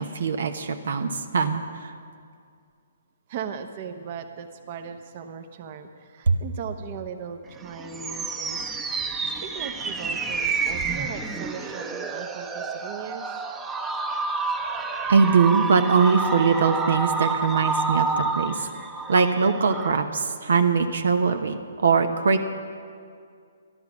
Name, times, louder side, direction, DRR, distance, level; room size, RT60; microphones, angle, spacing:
voice 1, 0.0-1.6 6.3-6.4 15.1-18.7 19.1-22.4, right 5 dB, 70° right, 7 dB, 0.9 m, -21 dB
voice 2, 3.3-8.7 9.4-13.3, right 7 dB, 45° right, 6 dB, 0.9 m, -38 dB
sound 1, 7.5-19.9, right 4 dB, 10° right, 0.8 m, -29 dB
12.5 x 11.5 x 6.1 m, 2.3 s
hypercardioid pair, 140°, 0 cm